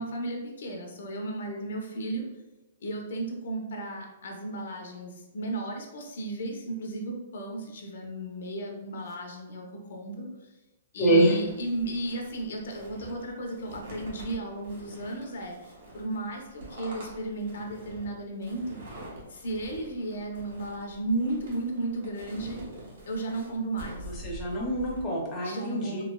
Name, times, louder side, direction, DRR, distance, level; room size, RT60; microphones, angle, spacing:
voice 1, 0.0-2.3 2.8-10.5 10.9-18.8 19.3-22.6 23.1-24.2 25.4-26.0, right 2 dB, 70° left, 1 dB, 0.6 m, -34 dB
voice 2, 11.0-11.4 24.2-26.0, right 1 dB, 15° left, -3 dB, 0.5 m, -25 dB
sound 1, 11.4-25.1, right 1 dB, 70° right, 1.1 m, -46 dB
3.1 x 2.8 x 2.2 m, 1.0 s
hypercardioid pair, 165°, 0 cm